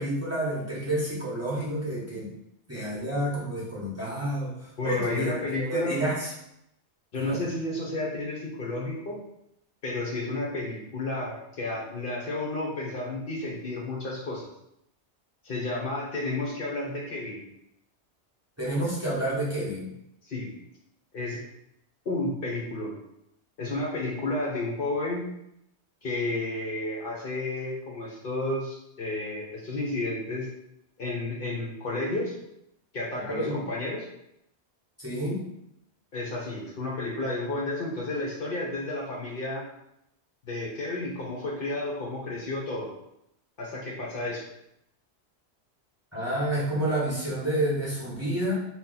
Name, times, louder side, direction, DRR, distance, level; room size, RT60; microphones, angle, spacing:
voice 1, 0.0-2.3 2.7-5.3 5.7-6.3 7.2-7.4 18.6-19.9 33.3-33.5 35.0-35.4 46.1-48.6, right 1 dB, 15° right, -8 dB, 0.8 m, -29 dB
voice 2, 4.8-6.0 7.1-9.2 9.8-14.4 15.4-17.4 20.2-20.5 21.1-21.4 22.1-23.0 23.6-25.3 26.0-30.5 31.0-32.3 32.9-34.0 36.1-39.6 40.4-42.9 43.6-44.4, left 2 dB, 60° left, -3 dB, 0.8 m, -31 dB
2.7 x 2.2 x 3.7 m, 0.80 s
omnidirectional pair, 1.2 m